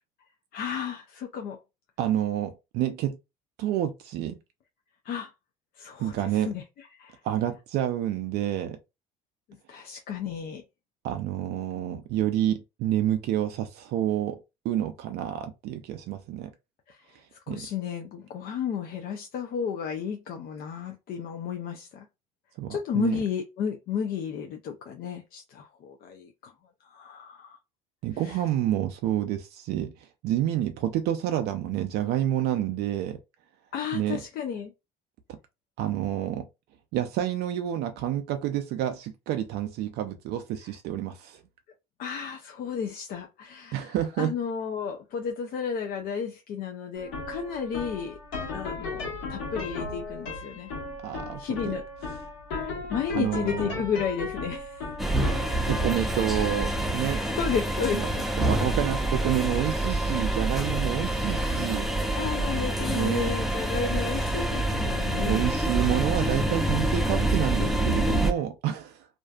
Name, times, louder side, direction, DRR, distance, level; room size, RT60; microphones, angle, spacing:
voice 1, 0.5-1.6 5.0-5.3 5.8-7.2 9.7-10.6 16.9-17.0 17.5-22.1 22.7-26.5 26.8-27.6 28.1-28.4 33.7-34.7 40.6-40.7 42.0-48.2 48.5-49.0 49.3-50.7 51.4-52.2 52.5-54.9 57.4-58.2 59.6-59.8 62.0-65.4 68.2-68.4, left 7 dB, 55° left, 0.5 m, -33 dB
voice 2, 2.0-3.2 3.6-4.4 6.0-6.5 7.2-8.8 11.0-14.4 14.6-16.5 17.5-17.7 22.6-23.2 28.0-33.2 33.9-34.2 35.8-36.5 36.9-41.4 43.7-44.3 51.0-51.4 51.7-51.8 53.1-53.8 55.7-57.2 57.9-58.1 58.4-61.9 62.9-63.3 65.3-69.1, right 11 dB, 60° right, 0.4 m, -28 dB
sound 1, 47.0-64.2, left 3 dB, 75° left, 1.1 m, -39 dB
sound 2, 55.0-68.3, right 1 dB, ahead, 0.5 m, -27 dB
2.5 x 2.3 x 2.3 m
supercardioid pair, 85°, 18 cm